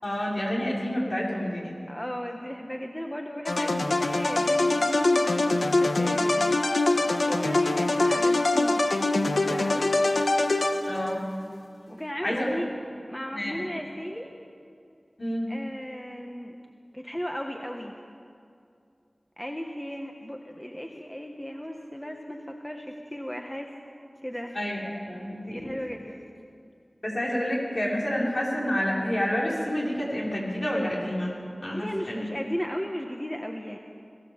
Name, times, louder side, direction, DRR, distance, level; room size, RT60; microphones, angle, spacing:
voice 1, 0.0-1.8 10.9-11.2 12.2-12.5 13.3-13.6 15.2-15.5 24.5-24.8 25.1-25.8 27.0-31.3 31.6-32.3, equal, 60° left, -4 dB, 5.7 m, -29 dB
voice 2, 1.9-6.6 7.3-8.8 9.3-10.0 11.9-12.7 13.0-14.3 15.5-16.6 16.9-17.9 19.4-23.7 24.2-24.5 25.3-26.2 31.7-33.8, equal, 15° left, 2 dB, 1.4 m, -35 dB
sound 1, 3.4-11.2, left 2 dB, 90° left, 1.4 m, -24 dB
21.5 x 16.5 x 7.3 m, 2.4 s
wide cardioid pair, 55°, 0 cm